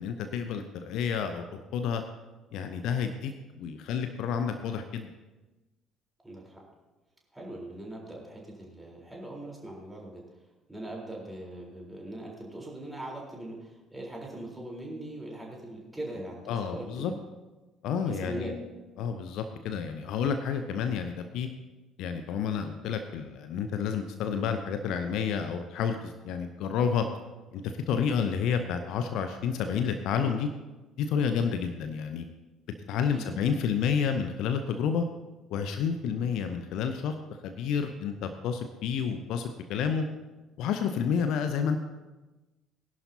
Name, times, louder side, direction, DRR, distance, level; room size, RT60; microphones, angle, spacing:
voice 1, 0.0-2.0 2.5-5.1 16.5-17.1 17.8-18.5 19.0-21.5 22.0-27.0 27.5-30.5 31.0-32.2 32.9-35.0 35.5-37.2 37.4-40.0 40.6-41.8, left 7 dB, 55° left, 8 dB, 0.8 m, -30 dB
voice 2, 6.2-6.6 7.3-10.2 10.7-17.2 18.0-18.5 33.0-33.3 36.0-36.1, right 1 dB, 10° right, -2 dB, 4.1 m, -41 dB
20.0 x 11.0 x 2.9 m, 1.1 s
figure-of-eight pair, 50°, 0 cm